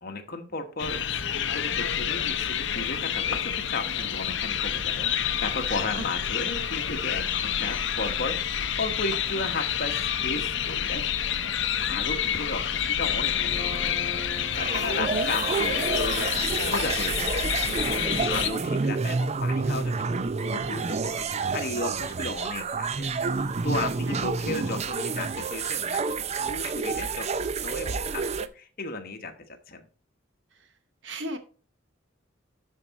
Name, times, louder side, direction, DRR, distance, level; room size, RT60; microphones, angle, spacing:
voice 1, 0.0-11.0 11.7-20.1 20.5-26.0 26.4-27.3 27.6-28.2 28.5-29.3 29.7-29.9, left 3 dB, 50° left, 6 dB, 1.3 m, -35 dB
sound 1, 0.8-18.5, left 8 dB, 70° left, 0.7 m, -28 dB
voice 2, 11.9-12.2 15.0-15.3 18.8-19.1 24.1-24.4 30.6-30.7 31.0-31.4, right 2 dB, 70° right, 8 dB, 1.0 m, -36 dB
Guitar, 13.3-19.6, left 2 dB, 25° left, 2.6 m, -45 dB
sound 2, 13.5-28.5, right 4 dB, 35° right, 0.5 m, -29 dB
12.0 x 4.7 x 4.1 m, 0.38 s
head